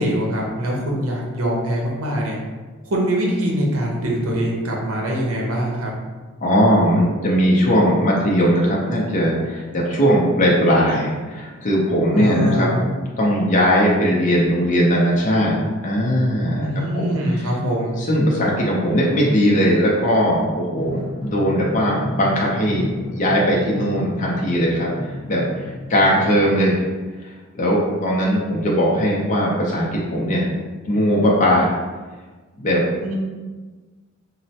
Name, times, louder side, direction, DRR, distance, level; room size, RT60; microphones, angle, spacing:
voice 1, 0.0-2.4 2.8-6.0 12.1-12.8 16.6-18.0 33.0-33.1, equal, 80° right, -2 dB, 0.7 m, -23 dB
voice 2, 6.4-12.7 13.2-16.7 16.9-17.5 18.0-24.9 25.3-26.8 27.2-30.5 30.9-31.7 32.6-32.8, equal, 35° left, -4 dB, 0.5 m, -19 dB
Drum, 20.7-26.3, equal, 85° left, 0.5 m, -32 dB
3.1 x 2.0 x 2.7 m, 1.3 s
head